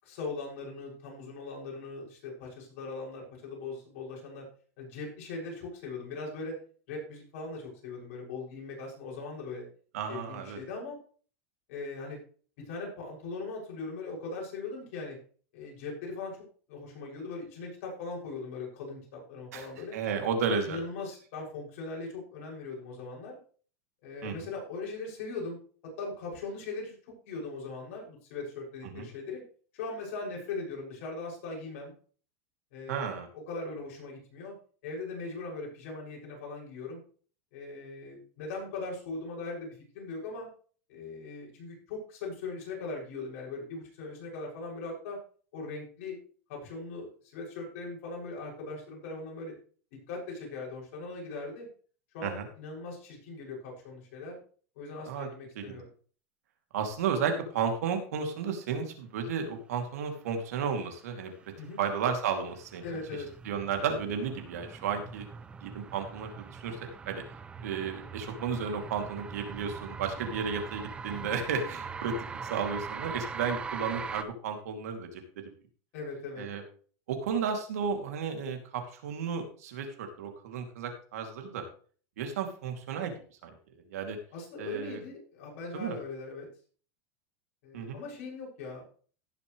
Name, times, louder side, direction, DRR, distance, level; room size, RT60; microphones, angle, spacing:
voice 1, 0.0-4.4 4.8-6.6 6.9-9.6 10.1-11.0 11.7-12.2 12.6-15.2 15.5-16.4 16.7-20.0 20.7-23.4 24.0-25.6 26.0-29.4 29.7-31.9 32.7-33.1 33.5-34.5 34.8-37.0 37.5-40.5 40.9-45.2 45.5-46.2 46.5-49.5 50.1-51.7 52.1-54.4 54.7-55.9 61.6-61.8 62.8-63.3 71.1-71.4 75.9-76.4 84.3-86.5 87.6-88.9, left 3 dB, 60° left, -3 dB, 6.6 m, -40 dB
voice 2, 9.9-10.6 19.5-19.7 19.9-20.8 24.2-24.4 28.8-29.1 32.9-33.3 52.2-52.4 55.1-55.3 55.6-55.8 56.7-61.3 61.8-62.8 63.4-65.3 65.6-66.8 67.1-67.2 67.6-72.2 72.4-75.4 76.4-76.6 77.1-81.6 82.2-83.1 83.4-83.5 83.9-84.2 84.6-85.0 85.7-86.0 87.7-88.0, right 6 dB, 90° right, 4 dB, 2.7 m, -33 dB
sound 1, 61.4-74.2, right 5 dB, 15° right, 0.5 m, -42 dB
17.0 x 7.3 x 3.2 m, 0.42 s
supercardioid pair, 160°, 8 cm